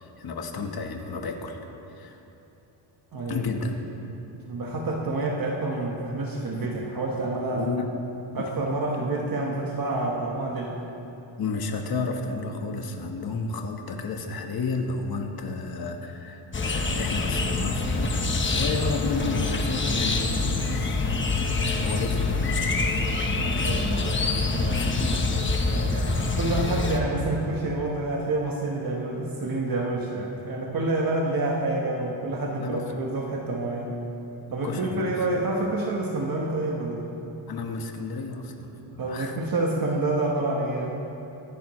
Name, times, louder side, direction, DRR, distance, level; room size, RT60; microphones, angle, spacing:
voice 1, 0.0-1.6 1.9-2.2 3.3-3.8 6.5-6.9 7.4-8.0 8.4-8.5 11.4-21.3 21.6-22.7 32.6-33.0 34.6-35.2 37.5-39.4, left 4 dB, 45° left, 4 dB, 1.4 m, -32 dB
voice 2, 3.1-3.5 4.3-7.7 8.3-10.8 23.3-24.9 25.7-33.9 34.5-37.1 39.0-41.0, right 2 dB, 45° right, -1 dB, 1.3 m, -28 dB
sound 1, 16.5-27.0, left 3 dB, 25° left, 1.0 m, -25 dB
24.5 x 11.0 x 3.2 m, 2.9 s
wide cardioid pair, 155°, 49 cm